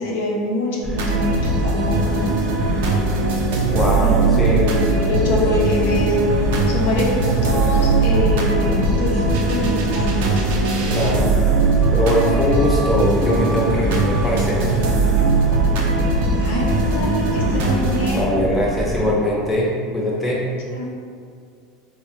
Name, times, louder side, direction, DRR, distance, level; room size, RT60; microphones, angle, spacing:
voice 1, 0.0-2.4 4.0-6.4 6.7-10.4 16.4-18.3 20.7-20.9, left 1 dB, 75° left, -3 dB, 0.6 m, -24 dB
sound 1, 0.8-19.1, equal, 15° right, 0.4 m, -28 dB
sound 2, 1.0-18.3, right 3 dB, 75° right, 0.4 m, -20 dB
voice 2, 3.7-4.7 10.9-11.3 11.9-14.8 18.1-20.4, equal, 10° left, -4 dB, 0.7 m, -21 dB
sound 3, 11.6-17.0, left 1 dB, 40° left, 0.8 m, -32 dB
3.3 x 2.1 x 3.0 m, 2.2 s
hypercardioid pair, 95°, 0 cm